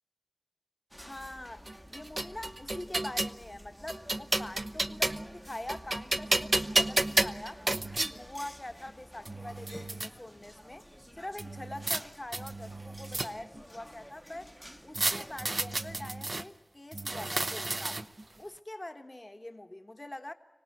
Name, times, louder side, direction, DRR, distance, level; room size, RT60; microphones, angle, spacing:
sound 1, 0.9-16.1, equal, ahead, 1.0 m, -51 dB
voice 1, 1.0-7.7 8.0-10.9 11.2-14.5 14.8-18.1 18.4-20.3, left 1 dB, 30° left, 1.4 m, -44 dB
sound 2, 1.7-3.4 3.9-5.3 5.7-8.1 8.9-9.0 9.3-10.1 11.4-12.0 12.3-13.6 14.9-16.4 16.9-18.2, right 2 dB, 45° right, 0.8 m, -31 dB
25.0 x 18.0 x 9.2 m
wide cardioid pair, 70°, 0 cm